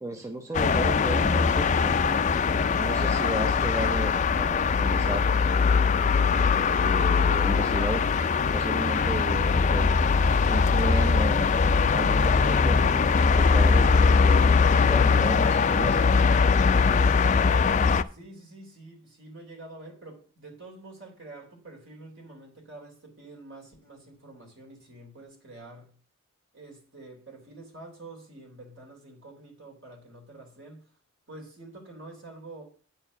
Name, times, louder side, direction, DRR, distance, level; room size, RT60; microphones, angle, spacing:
voice 1, 0.0-2.0 2.8-5.3 6.8-8.0 8.5-10.0 10.5-11.6 11.9-12.8 13.4-14.0 14.7-16.2, right 1 dB, 15° right, 0.6 m, -33 dB
sound 1, 0.5-18.0, left 5 dB, 35° left, 0.3 m, -21 dB
voice 2, 18.1-26.0 26.5-30.9 31.3-32.6, right 2 dB, 60° right, 3.3 m, -47 dB
9.0 x 4.6 x 6.9 m
head